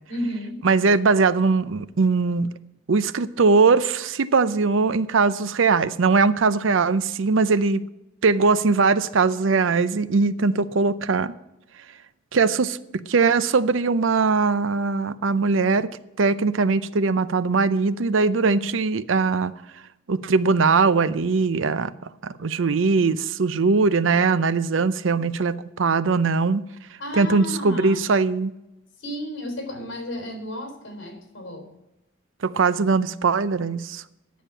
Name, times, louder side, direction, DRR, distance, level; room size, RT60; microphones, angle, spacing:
voice 1, 0.1-0.6 27.0-28.0 29.0-31.7, equal, 70° left, 3.8 m, -33 dB
voice 2, 0.6-2.5 2.9-7.8 8.2-11.3 12.3-15.9 16.2-19.5 20.1-21.9 22.2-26.6 27.1-28.5 32.4-34.0, right 4 dB, 75° right, 0.6 m, -21 dB
10.0 x 7.3 x 8.7 m
head